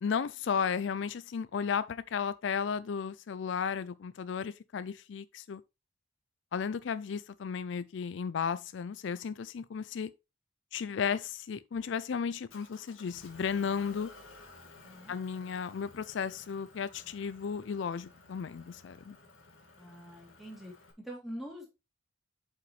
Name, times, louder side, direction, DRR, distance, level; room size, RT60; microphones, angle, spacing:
voice 1, 0.0-5.6 6.5-10.1 10.7-14.1 15.1-19.2, left 6 dB, 65° left, 0.4 m, -34 dB
Motor vehicle (road) / Engine, 12.5-20.9, left 2 dB, 90° left, 2.2 m, -55 dB
voice 2, 14.8-15.2 19.8-20.7 21.0-21.7, equal, ahead, 2.9 m, -44 dB
7.9 x 5.6 x 3.1 m
head